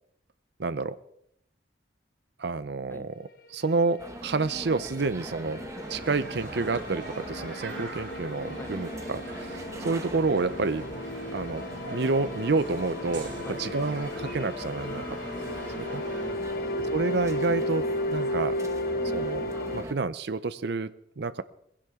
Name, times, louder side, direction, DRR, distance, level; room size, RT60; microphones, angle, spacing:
voice 1, 0.6-1.0 2.4-3.1 3.5-5.6 5.9-10.8 11.2-11.6 11.9-15.0 15.5-16.0 16.9-17.8 18.1-18.6 19.1-21.4, right 3 dB, 60° right, 13 dB, 0.6 m, -29 dB
sound 1, 3.7-19.8, left 1 dB, 50° left, 1.2 m, -34 dB
sound 2, 4.0-19.9, right 1 dB, 15° right, 1.1 m, -42 dB
Schoolyard kids, 5.8-16.3, right 3 dB, 80° right, 5.4 m, -44 dB
voice 2, 14.9-16.8, left 1 dB, 10° left, 12 dB, 0.6 m, -45 dB
21.0 x 16.0 x 3.7 m, 0.72 s
head